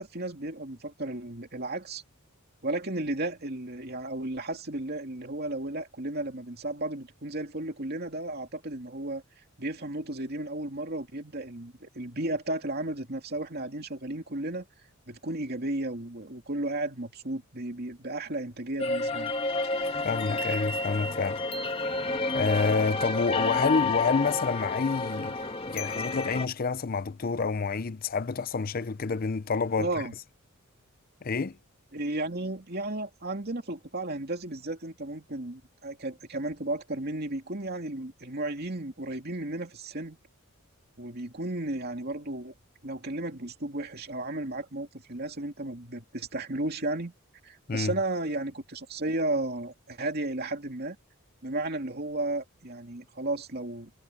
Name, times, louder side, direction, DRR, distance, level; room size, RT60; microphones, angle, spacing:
voice 1, 0.0-2.0 2.6-9.2 9.6-14.7 15.1-19.3 29.8-30.1 31.9-40.2 41.0-42.5 42.8-47.1 47.4-51.0 51.4-53.9, right 2 dB, 45° right, 2.7 m, -34 dB
sound 1, 18.8-26.5, left 3 dB, 25° left, 2.1 m, -30 dB
voice 2, 20.0-21.4 22.3-25.4 25.7-29.9 31.2-31.6 47.7-47.9, left 4 dB, 40° left, 0.5 m, -28 dB
head